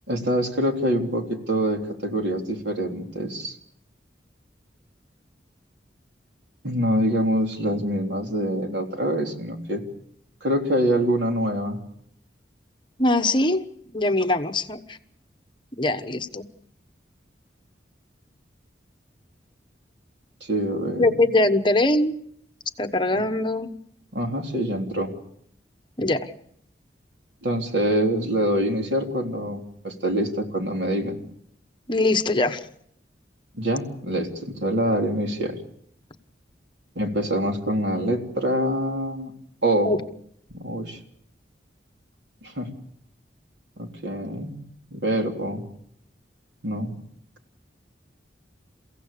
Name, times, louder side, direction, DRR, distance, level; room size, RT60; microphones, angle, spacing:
voice 1, 0.1-3.6 6.6-9.8 10.4-11.8 20.4-21.1 23.1-23.2 24.1-25.1 27.4-31.2 33.5-35.6 37.0-39.3 39.6-39.9 40.5-41.0 42.4-42.7 43.8-44.6 44.9-45.6 46.6-46.9, equal, 80° right, 3 dB, 3.6 m, -25 dB
voice 2, 13.0-13.6 13.9-15.0 15.8-16.5 21.0-22.1 22.8-23.7 26.0-26.3 31.9-32.6 39.8-40.0, left 2 dB, 25° left, 8 dB, 1.1 m, -22 dB
30.0 x 16.0 x 6.9 m, 0.70 s
head